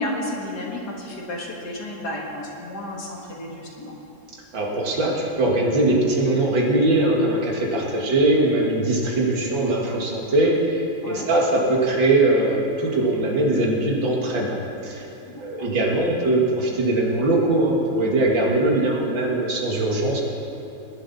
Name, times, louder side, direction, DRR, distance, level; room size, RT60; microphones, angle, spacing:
voice 1, 0.0-4.0 11.0-11.3 15.3-15.7, left 1 dB, 60° left, -2 dB, 2.3 m, -32 dB
voice 2, 4.5-14.6 14.8-15.1 15.4-20.2, right 2 dB, 80° right, -2 dB, 2.7 m, -21 dB
19.5 x 11.0 x 4.2 m, 2.9 s
omnidirectional pair, 2.0 m